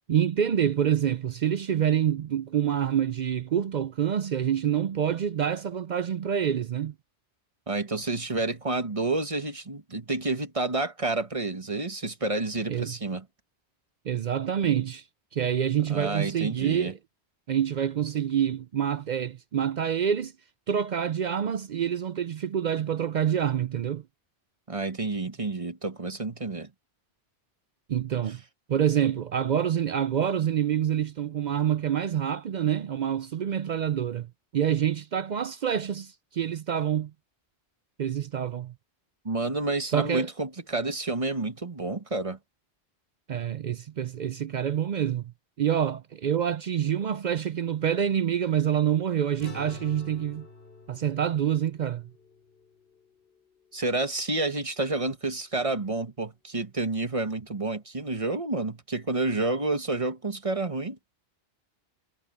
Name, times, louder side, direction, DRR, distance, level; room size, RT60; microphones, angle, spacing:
voice 1, 0.1-6.9 12.7-12.9 14.1-15.0 15.3-17.0 17.5-20.3 20.7-24.0 27.9-28.4 28.7-34.3 34.5-37.1 38.0-38.7 39.9-40.3 43.3-45.3 45.6-50.5 50.9-52.0, right 9 dB, 55° right, 0.5 m, -27 dB
voice 2, 7.7-13.2 15.9-16.9 24.7-26.7 39.2-42.4 53.7-61.0, right 2 dB, 30° right, 1.5 m, -29 dB
sound 1, 49.4-54.0, left 2 dB, 60° left, 3.1 m, -47 dB
omnidirectional pair, 1.1 m